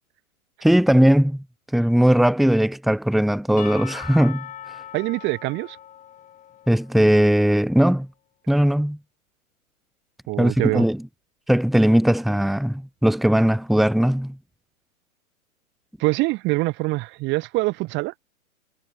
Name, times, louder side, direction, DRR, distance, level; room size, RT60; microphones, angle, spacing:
voice 1, 0.6-1.4 1.7-4.5 6.7-8.1 8.5-9.0 10.4-11.0 11.5-14.4, equal, ahead, 2.1 m, -18 dB
Percussion / Church bell, 3.6-7.4, left 10 dB, 15° left, 6.1 m, -40 dB
voice 2, 4.9-5.8 10.3-10.8 16.0-18.1, right 22 dB, 25° right, 3.8 m, -24 dB
figure-of-eight pair, 120°, 43 cm